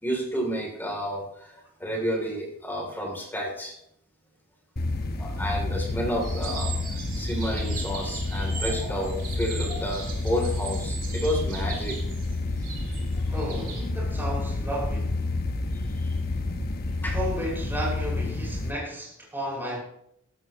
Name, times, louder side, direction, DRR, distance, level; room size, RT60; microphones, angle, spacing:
voice 1, 0.0-3.7 5.2-12.0 13.2-13.3 15.9-16.0 17.0-17.2, equal, 10° left, 3.1 m, -31 dB
sound 1, 4.8-18.7, left 2 dB, 50° left, 1.2 m, -29 dB
sound 2, 6.2-13.8, right 5 dB, 45° right, 3.0 m, -39 dB
voice 2, 13.3-15.2 17.1-19.8, equal, 10° right, 5.6 m, -33 dB
16.0 x 13.5 x 3.1 m
head